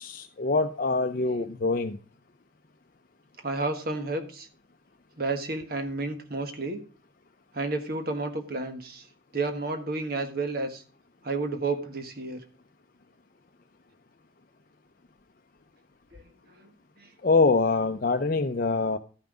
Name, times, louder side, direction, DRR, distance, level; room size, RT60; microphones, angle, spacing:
voice 1, 0.0-2.0 17.2-19.0, left 3 dB, 50° left, 5 dB, 0.6 m, -24 dB
voice 2, 3.4-4.5 5.2-6.8 7.5-9.0 9.3-10.8 11.2-12.4, right 3 dB, 50° right, 7 dB, 1.4 m, -31 dB
13.0 x 5.8 x 4.9 m, 0.40 s
head